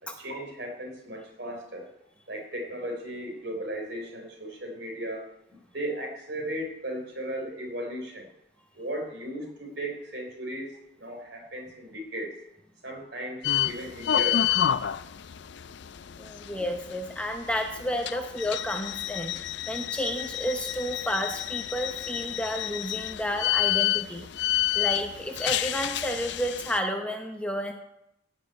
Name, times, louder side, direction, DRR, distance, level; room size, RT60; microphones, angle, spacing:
voice 1, 0.0-1.9 2.3-5.3 5.7-8.3 8.7-10.7 11.0-12.3 12.8-14.5 24.8-24.9, right 1 dB, 55° right, 2 dB, 3.8 m, -36 dB
sound 1, 13.4-26.8, left 12 dB, 60° left, 0.4 m, -30 dB
voice 2, 16.2-19.3 19.7-24.3 24.7-27.7, equal, 5° left, 4 dB, 0.9 m, -31 dB
16.0 x 6.3 x 8.9 m, 0.83 s
head